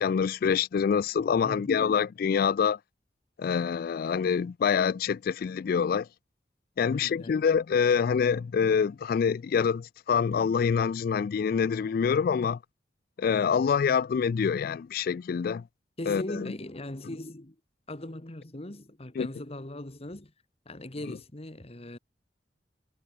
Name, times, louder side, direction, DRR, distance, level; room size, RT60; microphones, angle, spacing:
voice 1, 0.0-2.8 3.4-6.1 6.8-12.6 13.2-15.6 16.1-16.5 19.2-19.3, left 6 dB, 55° left, 0.3 m, -26 dB
voice 2, 1.4-1.9 6.9-7.4 16.0-17.5 17.9-20.3 20.6-22.0, left 1 dB, 35° left, 1.7 m, -39 dB
head